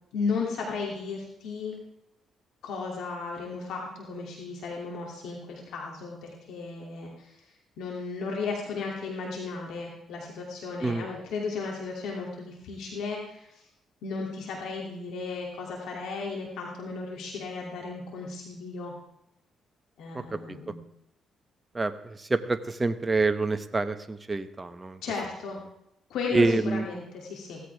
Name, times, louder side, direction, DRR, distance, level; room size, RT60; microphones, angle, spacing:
voice 1, 0.1-1.7 2.6-13.7 14.0-18.9 20.0-20.8 25.0-25.6 26.1-27.6, left 4 dB, 80° left, -1 dB, 2.7 m, -35 dB
voice 2, 21.7-25.0 26.3-26.8, right 3 dB, 20° right, 9 dB, 1.0 m, -27 dB
17.0 x 14.5 x 3.5 m, 0.82 s
cardioid pair, 90°, 0 cm